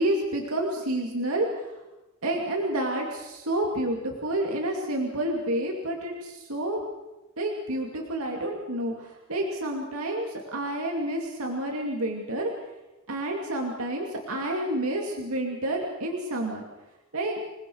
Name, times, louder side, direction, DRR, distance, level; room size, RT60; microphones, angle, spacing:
voice 1, 0.0-1.8 2.2-6.8 7.4-12.5 13.1-16.6 17.1-17.4, right 1 dB, 70° right, 1 dB, 2.7 m, -29 dB
27.0 x 19.5 x 6.4 m, 1.0 s
head